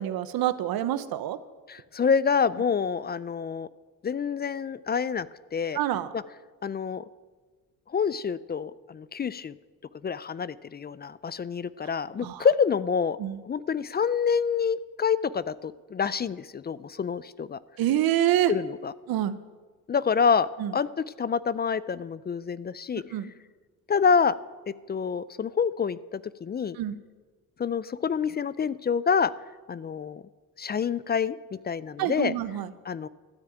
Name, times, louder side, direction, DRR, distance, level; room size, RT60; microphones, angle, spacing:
voice 1, 0.0-1.4 5.7-6.1 12.2-12.5 13.2-13.4 17.8-18.5 19.1-19.4 20.6-20.7 23.1-23.3 26.8-27.0 32.0-32.7, right 12 dB, 90° right, 14 dB, 0.9 m, -26 dB
voice 2, 1.7-3.7 4.0-5.3 5.5-5.8 6.1-6.2 6.6-7.0 7.9-9.5 10.0-13.2 13.5-17.6 18.5-18.9 19.9-23.0 23.9-24.4 24.7-26.8 27.6-29.3 29.7-30.2 30.6-32.3 32.9-33.1, left 6 dB, 30° left, 18 dB, 0.4 m, -27 dB
12.5 x 9.5 x 9.0 m, 1.4 s
cardioid pair, 105°, 35 cm